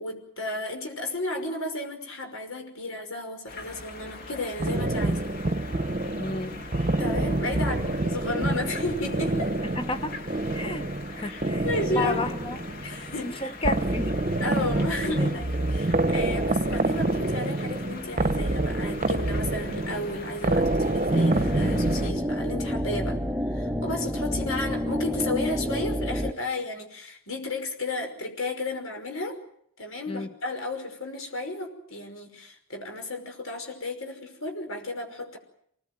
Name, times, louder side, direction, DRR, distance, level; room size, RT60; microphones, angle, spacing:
voice 1, 0.0-5.2 7.0-9.5 11.2-12.2 12.8-13.5 14.4-23.2 23.5-29.4 29.8-35.4, left 2 dB, 80° left, 4 dB, 5.7 m, -33 dB
sound 1, 3.5-22.1, left 3 dB, 45° left, 2.7 m, -42 dB
sound 2, 4.6-22.7, right 2 dB, 35° right, 1.0 m, -27 dB
voice 2, 6.2-6.6 9.8-10.2 10.5-10.9 11.2-12.6 13.2-14.2 30.1-30.3, left 3 dB, 25° left, 9 dB, 1.1 m, -32 dB
sound 3, 21.1-26.3, equal, ahead, 0.9 m, -29 dB
25.5 x 19.5 x 9.3 m, 0.68 s
head